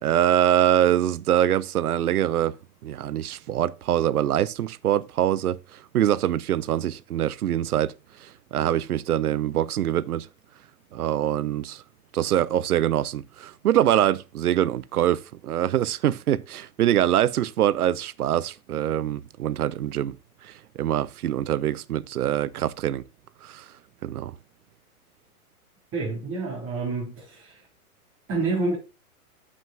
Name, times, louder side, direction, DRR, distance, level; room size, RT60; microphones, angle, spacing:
voice 1, 0.0-2.6 2.8-5.6 5.9-7.9 8.2-10.3 10.9-11.8 12.1-20.2 20.4-23.0 23.4-23.6 24.0-24.3, right 11 dB, 85° right, 0.7 m, -24 dB
voice 2, 25.9-27.6 28.3-28.8, right 3 dB, 30° right, 4.3 m, -28 dB
13.0 x 6.3 x 2.4 m
hypercardioid pair, 135°, 44 cm